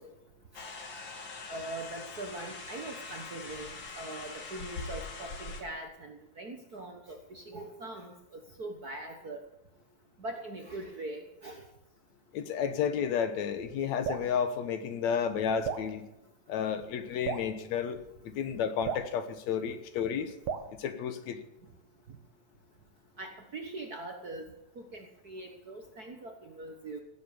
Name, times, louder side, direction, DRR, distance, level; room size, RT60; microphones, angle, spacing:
sound 1, 0.5-5.6, left 3 dB, 45° left, 2.3 m, -43 dB
voice 1, 1.5-9.4 10.2-11.7 22.1-22.2 23.2-27.0, right 2 dB, 45° right, 3 dB, 1.3 m, -42 dB
voice 2, 12.3-16.1 16.5-18.0 18.2-20.3 20.8-21.4, left 7 dB, 75° left, 10 dB, 2.4 m, -31 dB
Drip, 14.0-14.3 15.6-15.9 17.2-17.5 18.8-19.1 20.5-20.7, right 6 dB, 65° right, 2.0 m, -34 dB
17.0 x 8.2 x 7.0 m, 0.92 s
omnidirectional pair, 3.3 m